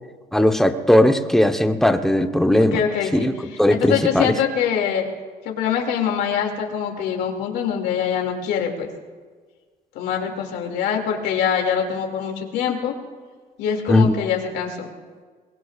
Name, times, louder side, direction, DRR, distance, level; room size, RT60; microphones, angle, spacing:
voice 1, 0.3-2.8 3.1-3.3 3.6-4.3 13.9-14.1, left 1 dB, ahead, 6 dB, 1.0 m, -17 dB
voice 2, 2.6-5.1 5.4-8.9 9.9-12.9 13.6-14.9, left 8 dB, 85° left, 2 dB, 2.6 m, -24 dB
23.0 x 21.5 x 2.5 m, 1.5 s
cardioid pair, 110°, 17 cm